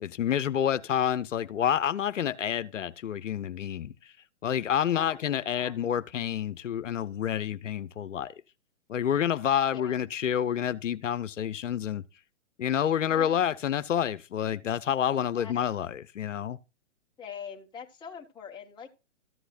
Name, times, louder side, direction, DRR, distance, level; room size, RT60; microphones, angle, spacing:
voice 1, 0.0-3.9 4.4-8.3 8.9-12.0 12.6-16.6, left 9 dB, 80° left, 0.8 m, -28 dB
voice 2, 4.9-5.2 5.5-5.8 9.7-10.0 13.1-13.5 15.4-15.6 17.2-18.9, left 7 dB, 10° left, 1.3 m, -43 dB
14.0 x 8.1 x 2.5 m
hypercardioid pair, 135°, 37 cm